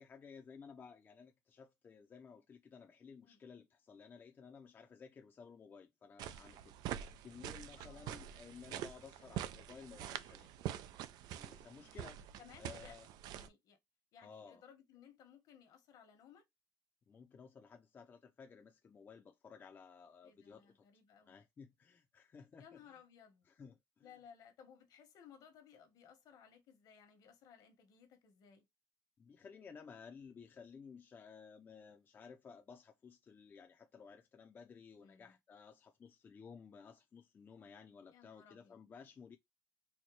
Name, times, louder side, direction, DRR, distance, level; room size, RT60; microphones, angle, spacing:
voice 1, 0.0-6.7 7.2-10.5 11.4-12.2 12.6-13.1 14.2-14.6 17.1-20.8 21.2-23.0 23.5-24.1 29.2-39.4, left 6 dB, 30° left, 0.5 m, -56 dB
sound 1, 6.2-13.5, right 11 dB, 85° right, 0.4 m, -46 dB
voice 2, 7.8-8.2 9.2-9.3 11.8-12.1 12.4-13.0 13.3-13.8 14.1-16.4 20.2-21.4 22.6-23.5 24.0-28.7 35.0-35.4 38.1-38.8, left 7 dB, 70° left, 1.2 m, -61 dB
4.3 x 2.2 x 3.0 m
cardioid pair, 140°, 7 cm